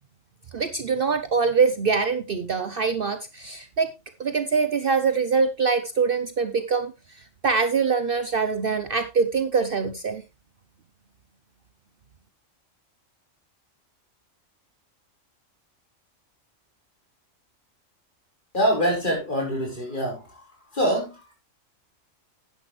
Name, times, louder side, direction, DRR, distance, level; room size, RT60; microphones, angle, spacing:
voice 1, 0.5-3.9 4.2-10.2, right 5 dB, 50° right, 9 dB, 0.9 m, -24 dB
voice 2, 18.5-20.5 20.7-21.3, equal, 40° left, 0 dB, 4.8 m, -25 dB
10.5 x 10.5 x 3.2 m, 0.26 s
omnidirectional pair, 1.3 m